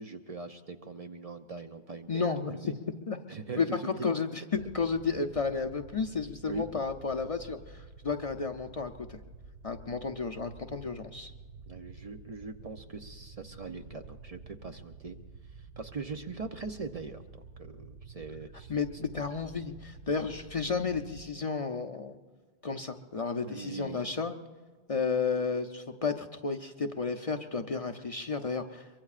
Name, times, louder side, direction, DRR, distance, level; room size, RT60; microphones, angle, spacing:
voice 1, 0.0-2.7 3.3-3.9 6.5-6.7 11.7-15.2 15.5-19.1 23.4-24.0, right 4 dB, 40° right, 6 dB, 0.7 m, -42 dB
voice 2, 2.1-2.6 3.1-3.2 3.6-9.2 9.6-11.3 18.7-22.2 22.6-24.3 24.9-28.9, left 5 dB, 40° left, 4 dB, 0.6 m, -32 dB
sound 1, 4.5-21.3, right 4 dB, 75° right, 1.1 m, -50 dB
23.5 x 23.5 x 2.5 m, 1.4 s
omnidirectional pair, 1.0 m